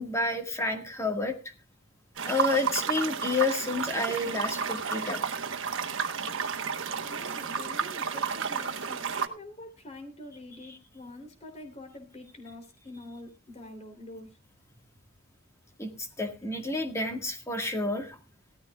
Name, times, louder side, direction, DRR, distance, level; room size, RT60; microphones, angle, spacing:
voice 1, 0.0-1.4 2.2-5.4 15.8-18.2, left 2 dB, 15° left, 4 dB, 1.7 m, -30 dB
sound 1, 2.2-9.3, right 6 dB, 65° right, 1.2 m, -32 dB
voice 2, 7.0-14.4, left 1 dB, 35° left, 5 dB, 3.3 m, -46 dB
17.5 x 13.5 x 2.4 m, 0.29 s
head